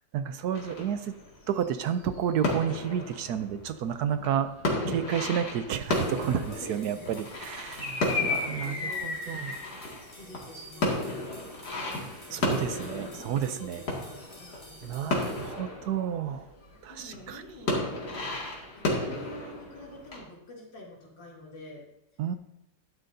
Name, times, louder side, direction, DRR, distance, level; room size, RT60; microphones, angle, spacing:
voice 1, 0.1-1.1 1.5-4.5 4.9-9.5 12.3-13.8 14.8-16.4 16.8-17.4 22.2-22.4, right 9 dB, 70° right, 11 dB, 1.1 m, -31 dB
sound 1, 0.5-16.7 17.0-20.2, left 2 dB, 60° left, 2.7 m, -33 dB
sound 2, 5.9-15.5, equal, 25° left, 3.5 m, -52 dB
voice 2, 6.5-7.4 8.4-9.6 10.1-11.1 12.3-14.8 16.3-16.4 16.9-18.3 18.8-21.8 22.1-22.2, left 1 dB, 85° left, -3 dB, 3.5 m, -48 dB
13.0 x 11.0 x 2.7 m, 0.89 s
omnidirectional pair, 1.9 m